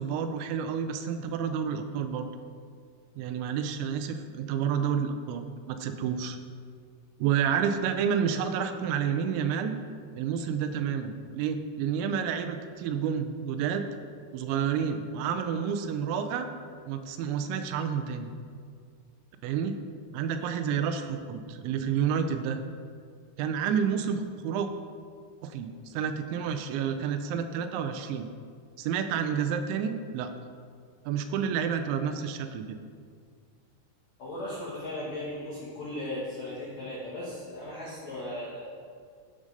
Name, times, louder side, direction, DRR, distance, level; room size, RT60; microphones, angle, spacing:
voice 1, 0.0-2.3 3.2-6.4 7.2-9.8 10.2-13.9 14.3-16.5 16.9-18.3 19.4-19.8 20.1-22.6 23.4-24.7 25.4-28.3 28.8-30.3 31.1-32.8, right 7 dB, 85° right, 8 dB, 3.0 m, -29 dB
voice 2, 34.2-38.8, left 1 dB, 75° left, -7 dB, 1.6 m, -37 dB
11.0 x 5.0 x 5.2 m, 2.1 s
omnidirectional pair, 5.2 m